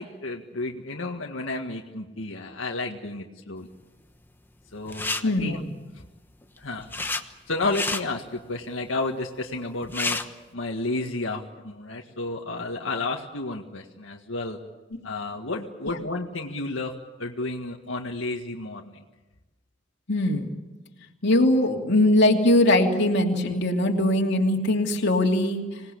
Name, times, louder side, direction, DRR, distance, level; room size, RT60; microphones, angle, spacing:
voice 1, 0.0-3.7 4.7-5.6 6.6-7.1 7.5-10.2 10.5-14.6 15.0-16.9 17.2-19.0, left 2 dB, 90° left, 0 dB, 1.9 m, -31 dB
sound 1, 4.9-5.2 6.4-7.2 7.6-8.0 9.5-9.6 9.8-10.3, left 3 dB, 10° left, 1.2 m, -29 dB
voice 2, 5.2-5.7 15.8-16.0 20.1-20.5 21.2-25.8, left 1 dB, 60° left, 1 dB, 2.9 m, -21 dB
26.5 x 19.0 x 8.6 m, 1.1 s
head